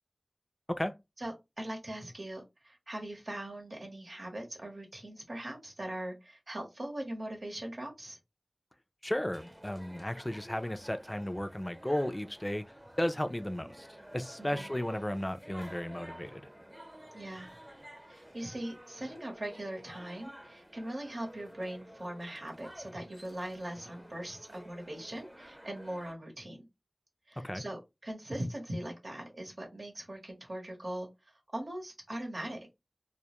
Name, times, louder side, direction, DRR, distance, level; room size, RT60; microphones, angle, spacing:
voice 1, 1.2-8.2 14.4-14.7 17.1-17.5 18.1-26.7 27.3-31.1 31.5-32.6, right 1 dB, 75° right, 0.9 m, -40 dB
voice 2, 9.0-12.7 13.0-13.9 14.1-16.4 27.4-27.6, left 1 dB, 25° left, 0.3 m, -34 dB
sound 1, 9.3-26.1, right 1 dB, 30° right, 0.8 m, -52 dB
2.1 x 2.1 x 2.8 m
wide cardioid pair, 40°, 0 cm